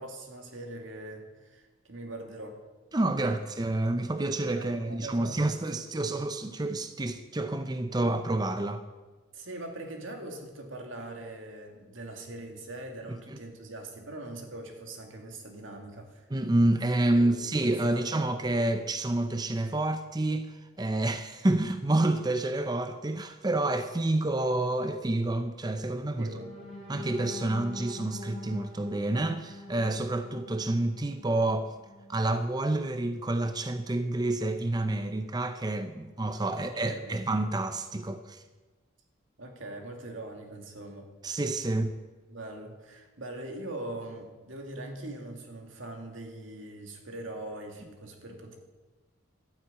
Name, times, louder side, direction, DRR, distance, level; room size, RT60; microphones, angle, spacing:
voice 1, 0.0-2.6 3.1-3.4 4.5-5.7 6.0-6.1 9.3-16.3 17.1-18.2 26.2-26.5 36.5-37.2 39.4-41.1 42.3-48.6, right 1 dB, 80° right, 2.5 m, -42 dB
voice 2, 2.9-8.8 13.3-13.4 16.3-26.3 26.9-31.7 32.1-38.4 41.2-42.0, right 2 dB, 20° right, 0.6 m, -28 dB
sound 1, 26.3-32.2 32.7-32.9 33.2-33.5, left 2 dB, ahead, 5.8 m, -44 dB
12.0 x 9.4 x 8.6 m
head